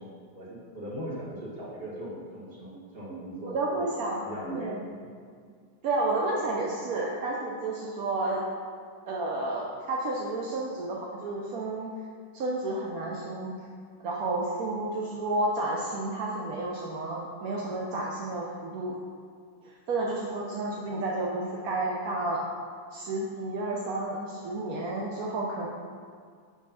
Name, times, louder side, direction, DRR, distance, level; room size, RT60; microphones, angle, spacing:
voice 1, 0.0-3.9 4.2-4.7, right 1 dB, 30° right, -7 dB, 1.9 m, -39 dB
voice 2, 3.5-4.2 4.5-4.8 5.8-8.5 9.1-11.9 12.3-13.5 14.0-19.0 19.6-22.4 22.9-25.7, right 2 dB, 65° right, -2 dB, 0.9 m, -31 dB
6.7 x 4.8 x 5.6 m, 2.1 s
omnidirectional pair, 2.3 m